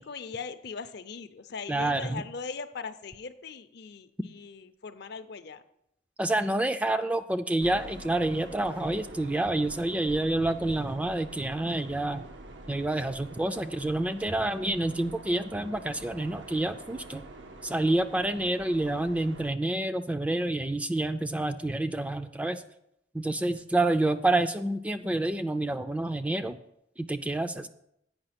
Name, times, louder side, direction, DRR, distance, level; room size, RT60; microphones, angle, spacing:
voice 1, 0.0-5.6, left 5 dB, 65° left, 10 dB, 0.6 m, -40 dB
voice 2, 1.7-2.2 6.2-12.2 12.7-17.2 17.6-22.6 23.1-26.6 27.0-27.7, right 2 dB, 10° right, 9 dB, 0.3 m, -28 dB
sound 1, 7.6-19.5, right 2 dB, 90° right, 0.8 m, -46 dB
8.8 x 5.6 x 5.8 m, 0.76 s
head